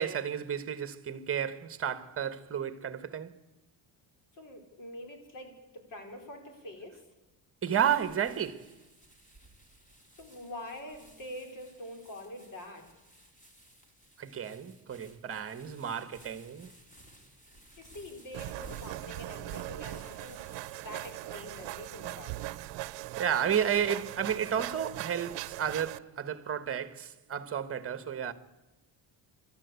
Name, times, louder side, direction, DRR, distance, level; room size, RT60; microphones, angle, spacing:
voice 1, 0.0-3.3 7.6-8.6 14.2-16.7 23.2-28.3, right 8 dB, 30° right, 1.4 m, -32 dB
voice 2, 4.3-7.0 10.1-12.9 17.8-22.5, left 1 dB, 50° left, 4.5 m, -45 dB
sound 1, 7.9-21.7, right 1 dB, 20° left, 3.7 m, -58 dB
sound 2, 18.3-26.0, right 17 dB, 90° right, 0.8 m, -40 dB
27.0 x 13.0 x 8.3 m
cardioid pair, 135°, 42 cm